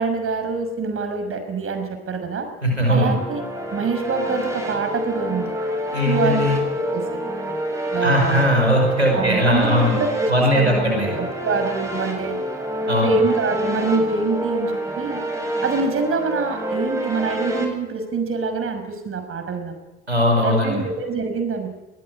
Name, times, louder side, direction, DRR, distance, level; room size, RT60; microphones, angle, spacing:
voice 1, 0.0-2.5 2.9-3.4 3.7-5.5 6.0-6.5 6.9-7.0 7.9-8.5 9.1-12.4 13.0-15.2 15.6-19.7 20.4-21.7, right 4 dB, 40° right, 7 dB, 6.1 m, -25 dB
voice 2, 2.6-3.1 5.9-6.6 8.0-9.9 10.3-11.1 12.9-13.1 20.1-20.8, equal, 90° right, 0 dB, 5.5 m, -19 dB
sound 1, 2.9-17.6, equal, 10° right, 7.7 m, -28 dB
22.0 x 19.5 x 9.9 m, 1.1 s
figure-of-eight pair, 50°, 32 cm